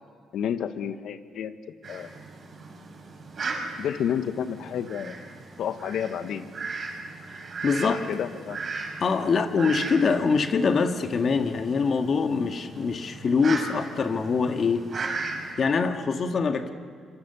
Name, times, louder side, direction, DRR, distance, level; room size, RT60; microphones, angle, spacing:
voice 1, 0.3-1.5 1.9-2.1 3.8-5.2 5.6-6.5 7.8-8.6, left 9 dB, 75° left, 11 dB, 1.3 m, -30 dB
Fowl, 1.8-15.5, right 4 dB, 45° right, 6.0 m, -37 dB
voice 2, 7.6-8.0 9.0-14.9 15.6-16.7, left 5 dB, 50° left, 7 dB, 1.8 m, -24 dB
27.0 x 24.0 x 7.0 m, 2.2 s
cardioid pair, 90°, 0 cm